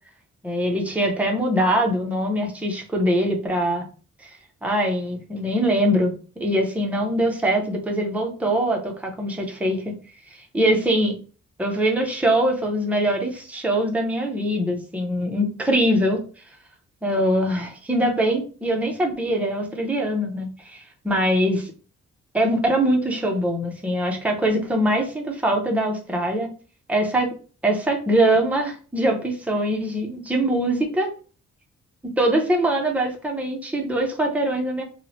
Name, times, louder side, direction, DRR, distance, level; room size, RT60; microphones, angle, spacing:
voice 1, 0.4-3.8 4.2-4.3 4.6-9.9 10.3-11.2 11.6-16.2 17.0-21.7 22.3-26.5 26.9-27.3 27.6-31.1 32.2-34.8, right 1 dB, 5° right, 1 dB, 0.5 m, -23 dB
3.0 x 2.0 x 3.9 m, 0.39 s
wide cardioid pair, 170°, 29 cm